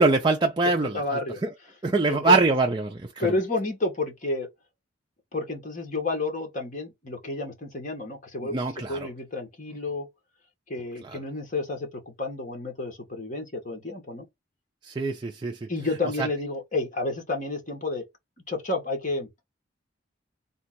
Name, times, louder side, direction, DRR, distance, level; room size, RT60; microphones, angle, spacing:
voice 1, 0.0-1.5 1.8-3.4 8.4-9.1 11.0-11.2 14.8-15.7 16.2-16.3, right 3 dB, 25° right, 0.5 m, -24 dB
voice 2, 0.8-1.4 2.1-2.4 3.2-4.5 5.3-8.6 8.9-10.1 10.7-14.3 15.7-18.0 18.5-19.3, left 2 dB, 45° left, 1.6 m, -30 dB
3.8 x 2.5 x 4.3 m
head